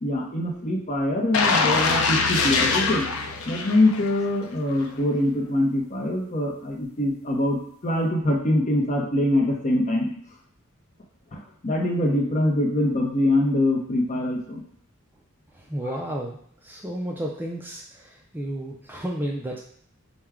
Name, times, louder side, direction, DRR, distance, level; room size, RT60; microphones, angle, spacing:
voice 1, 0.0-3.0 3.5-7.6 7.8-10.1 11.3-14.6 15.8-15.9, left 1 dB, 35° left, 0 dB, 0.7 m, -23 dB
sound 1, 1.3-4.3 4.7-4.9, left 4 dB, 70° left, 0.5 m, -23 dB
voice 2, 15.7-16.4 16.6-19.6, right 1 dB, 10° right, -1 dB, 0.3 m, -32 dB
4.5 x 2.2 x 3.6 m, 0.64 s
head